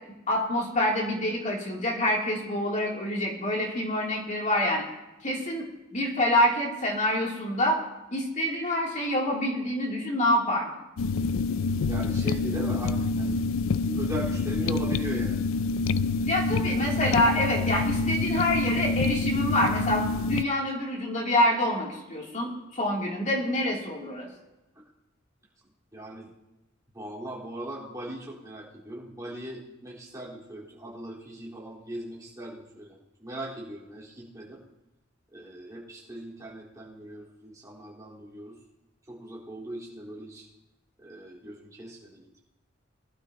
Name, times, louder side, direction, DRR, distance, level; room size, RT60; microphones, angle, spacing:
voice 1, 0.3-4.8 5.2-7.8 8.1-10.7 16.3-24.3, left 1 dB, 40° left, -2 dB, 2.9 m, -26 dB
sound 1, 11.0-20.4, left 3 dB, 85° left, 0.4 m, -27 dB
voice 2, 11.8-13.4 13.7-15.4 25.9-26.3 26.9-34.6 35.3-38.5 39.1-40.5 41.0-42.5, right 1 dB, 15° right, -6 dB, 4.0 m, -39 dB
22.0 x 12.0 x 2.9 m, 1.0 s
head